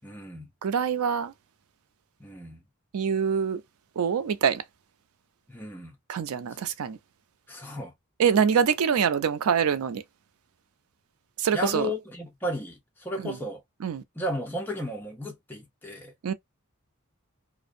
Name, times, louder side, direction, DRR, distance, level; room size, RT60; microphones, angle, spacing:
voice 1, 0.0-0.5 2.2-2.6 5.5-5.9 7.5-7.9 11.5-13.6 14.2-16.1, left 1 dB, 10° left, 0.5 m, -34 dB
voice 2, 0.6-1.3 2.9-3.6 4.0-4.6 6.1-7.0 8.2-10.0 11.4-11.9 13.2-13.4 13.8-14.0 16.2-16.3, right 7 dB, 80° right, 0.4 m, -25 dB
2.5 x 2.0 x 2.5 m
head